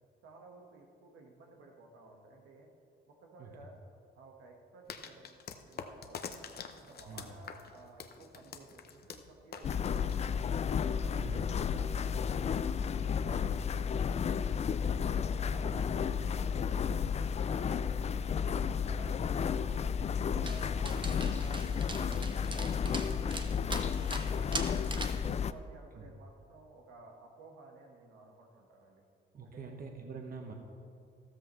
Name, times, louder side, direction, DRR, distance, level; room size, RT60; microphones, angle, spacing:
voice 1, 0.2-2.7 3.1-3.8 4.1-6.4 6.8-10.4 10.8-15.0 15.4-17.9 18.3-23.6 24.0-24.5 25.2-29.0 29.4-29.7, right 3 dB, 85° right, 1 dB, 1.6 m, -55 dB
sound 1, 4.9-10.7, left 6 dB, 50° left, 0.8 m, -46 dB
sound 2, 9.6-25.5, left 7 dB, 35° left, 0.4 m, -32 dB
voice 2, 11.1-11.5 15.6-15.8 20.8-20.9 25.9-26.1 29.3-30.5, right 4 dB, 50° right, 2 dB, 1.4 m, -45 dB
Dog, 20.5-25.3, right 3 dB, 25° right, 1.0 m, -42 dB
13.5 x 13.0 x 3.2 m, 2.4 s
cardioid pair, 90°, 20 cm